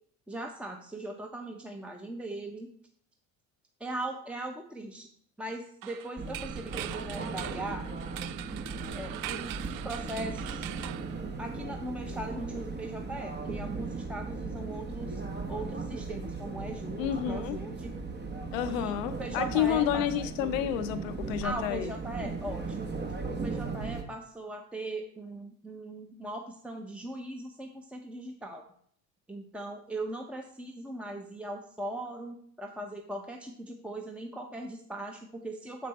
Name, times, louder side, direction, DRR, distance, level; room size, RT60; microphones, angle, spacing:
voice 1, 0.3-2.7 3.8-5.1 5.4-7.9 8.9-10.7 11.4-15.2 15.5-17.9 18.7-20.1 21.4-22.9 23.4-28.6 29.3-35.9, right 1 dB, 5° right, 3 dB, 0.9 m, -39 dB
sound 1, 5.8-11.8, right 14 dB, 60° right, 0.5 m, -42 dB
sound 2, 6.2-24.0, right 4 dB, 25° right, 1.2 m, -37 dB
voice 2, 17.0-17.6 18.5-21.9, left 10 dB, 85° left, 10 dB, 0.7 m, -30 dB
6.9 x 6.0 x 4.2 m, 0.62 s
hypercardioid pair, 75°, 38 cm